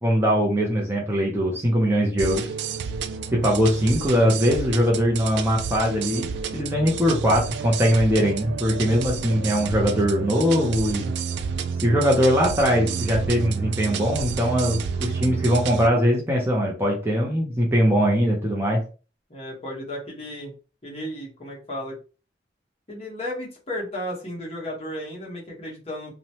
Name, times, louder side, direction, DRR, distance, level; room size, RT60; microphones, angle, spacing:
voice 1, 0.0-2.5 3.3-11.1 11.8-18.8, equal, 15° right, -2 dB, 0.5 m, -21 dB
sound 1, 2.2-15.9, right 6 dB, 65° right, 0.3 m, -30 dB
voice 2, 19.3-20.5 20.8-22.0 22.9-26.1, left 1 dB, 35° left, -3 dB, 1.1 m, -34 dB
2.9 x 2.2 x 2.8 m, 0.35 s
head